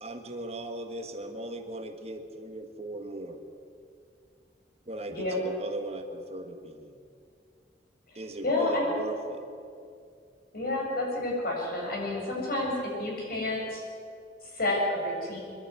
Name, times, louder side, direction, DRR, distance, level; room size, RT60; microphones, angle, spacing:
voice 1, 0.0-3.4 4.9-7.0 8.1-9.4, right 1 dB, 35° right, 6 dB, 1.5 m, -38 dB
voice 2, 8.4-8.9 10.5-13.8 14.5-15.4, left 1 dB, 55° left, -2 dB, 7.1 m, -29 dB
24.0 x 11.5 x 9.6 m, 2.3 s
head